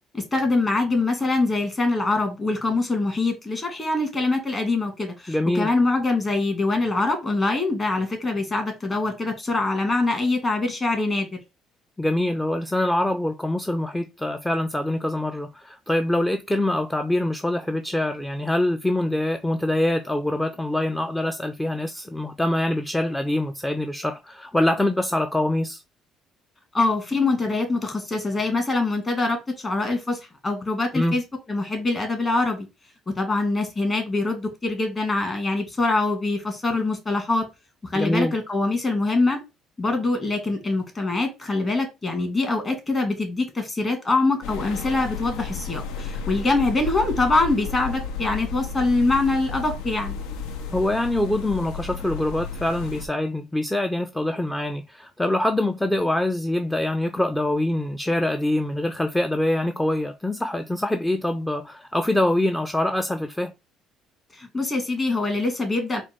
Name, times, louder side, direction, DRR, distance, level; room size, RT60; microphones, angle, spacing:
voice 1, 0.1-11.4 26.7-31.2 31.5-32.7 33.2-37.5 37.8-39.4 39.8-50.2 64.3-66.0, left 2 dB, 30° left, 1.8 m, -24 dB
voice 2, 5.3-5.7 12.0-25.8 30.9-31.2 37.9-38.3 50.7-63.5, left 1 dB, 10° left, 0.4 m, -24 dB
sound 1, 44.4-53.1, left 5 dB, 80° left, 0.6 m, -33 dB
4.4 x 2.2 x 4.4 m
supercardioid pair, 80°, 0 cm